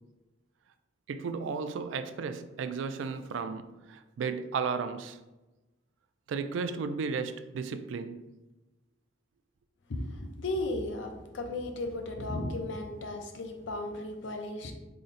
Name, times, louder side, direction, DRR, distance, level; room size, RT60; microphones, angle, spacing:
voice 1, 1.1-5.2 6.3-8.2, right 5 dB, 75° right, 0.3 m, -34 dB
voice 2, 9.9-14.7, left 2 dB, 70° left, 0.5 m, -35 dB
3.8 x 2.1 x 3.9 m
head